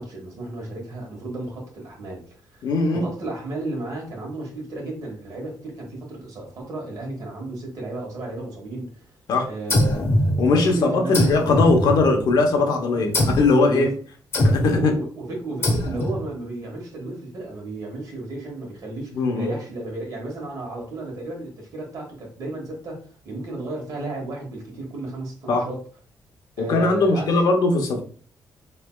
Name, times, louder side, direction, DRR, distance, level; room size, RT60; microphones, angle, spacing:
voice 1, 0.0-2.2 2.5-9.0 9.4-10.1 10.5-11.2 12.9-13.0 13.6-14.0 14.6-25.8 26.6-27.4, right 2 dB, 60° right, 0 dB, 1.2 m, -33 dB
voice 2, 2.6-3.1 9.3-9.5 10.4-13.9 14.4-15.0 19.1-19.5 25.5-25.7 26.6-28.0, left 3 dB, 70° left, 2 dB, 0.8 m, -20 dB
sound 1, 9.7-10.7 11.1-12.4 13.1-13.6 14.3-14.9 15.6-16.3, left 1 dB, 35° left, 1.0 m, -22 dB
4.3 x 3.3 x 2.2 m, 0.43 s
wide cardioid pair, 175°, 7 cm